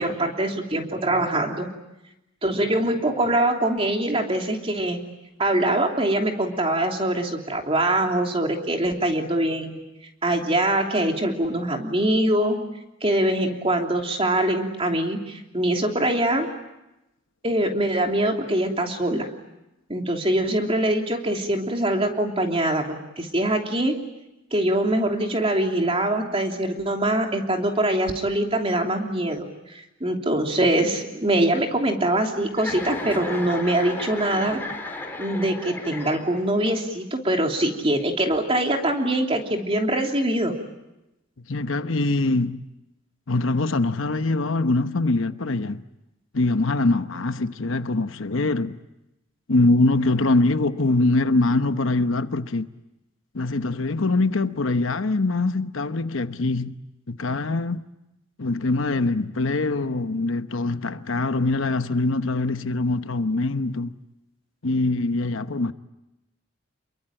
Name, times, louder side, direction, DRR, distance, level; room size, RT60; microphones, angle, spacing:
voice 1, 0.0-1.7 2.4-5.0 5.4-9.8 10.2-12.6 13.0-16.5 17.4-19.3 19.9-22.8 23.2-23.9 24.5-29.5 30.0-34.6 35.2-40.5, right 1 dB, 30° right, 3.1 m, -23 dB
Chuckle chortle, 32.5-36.6, left 2 dB, 10° left, 3.8 m, -34 dB
voice 2, 41.5-42.6 43.3-45.8 46.3-48.8 49.5-52.7 53.3-56.8 57.1-57.8 58.4-63.9 64.6-65.7, left 2 dB, 75° left, 1.0 m, -23 dB
29.0 x 22.5 x 8.9 m
head